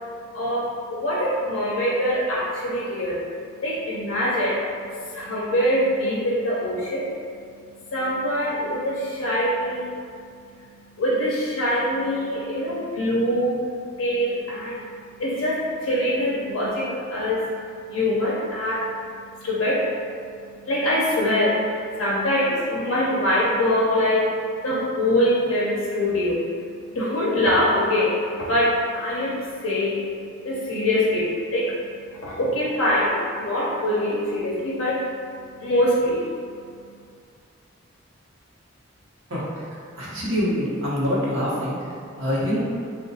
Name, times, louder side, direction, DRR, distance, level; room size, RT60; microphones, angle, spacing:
voice 1, 0.3-3.2 3.6-4.6 5.1-7.0 7.9-9.9 11.0-13.6 14.0-14.8 15.2-17.5 17.9-18.8 19.4-19.8 20.7-24.3 24.6-26.4 26.9-28.1 28.5-30.0 30.4-31.7 32.2-35.0 35.6-36.2, left 1 dB, 85° left, -6 dB, 0.5 m, -23 dB
voice 2, 39.3-39.7 40.0-42.6, equal, 70° right, -7 dB, 0.8 m, -25 dB
2.8 x 2.1 x 2.6 m, 2.2 s
head